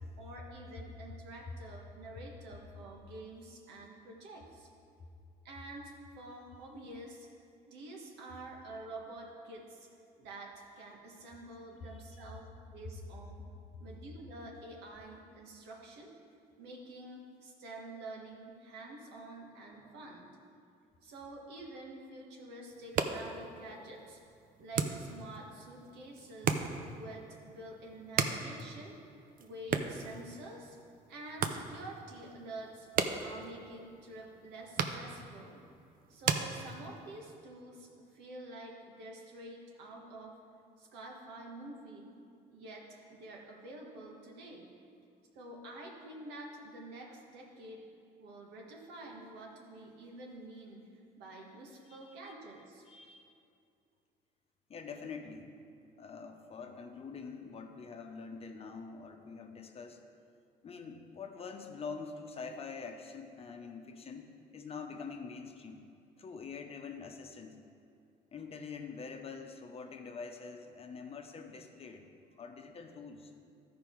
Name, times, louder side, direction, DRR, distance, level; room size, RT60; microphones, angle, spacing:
voice 1, 0.2-4.7 5.4-7.3 7.7-9.9 10.2-13.4 13.8-16.1 16.6-20.3 21.0-24.2 24.6-26.6 26.9-29.0 29.4-30.8 31.1-32.9 33.2-35.6 36.1-40.4 40.8-42.2 42.5-44.7 45.3-47.8 48.2-50.9 51.2-52.8, right 2 dB, 90° right, -1 dB, 1.5 m, -48 dB
sound 1, 22.7-37.2, right 6 dB, 55° right, 0.6 m, -38 dB
voice 2, 51.9-52.3 52.8-53.3 54.7-55.5 56.0-60.0 60.6-65.8 66.2-67.6 68.3-72.1 72.4-73.3, left 5 dB, 35° left, 4 dB, 0.8 m, -45 dB
13.0 x 5.1 x 4.7 m, 2.5 s
cardioid pair, 110°, 17 cm